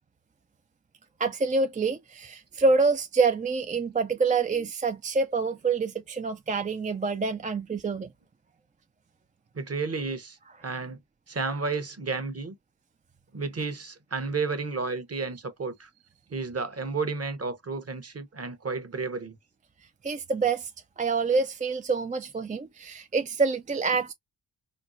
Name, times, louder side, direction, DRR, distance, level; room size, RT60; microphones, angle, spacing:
voice 1, 1.2-8.1 20.0-20.7 21.0-24.1, right 4 dB, 20° right, 0.3 m, -26 dB
voice 2, 9.5-11.0 11.3-12.5 13.3-15.9 16.3-19.4, right 4 dB, 35° right, 0.9 m, -32 dB
4.4 x 2.1 x 2.5 m
cardioid pair, 50°, 40 cm